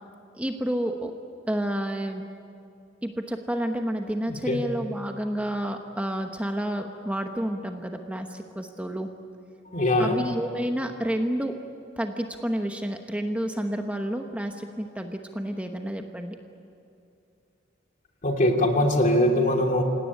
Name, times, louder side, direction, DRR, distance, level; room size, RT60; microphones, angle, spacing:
voice 1, 0.3-1.1 1.5-2.2 3.0-9.1 10.0-11.6 12.0-16.4, equal, 5° right, 4 dB, 1.0 m, -30 dB
voice 2, 4.3-4.6 9.7-10.3 18.2-19.8, left 1 dB, 40° left, 3 dB, 2.9 m, -22 dB
26.5 x 17.5 x 9.9 m, 2.5 s
head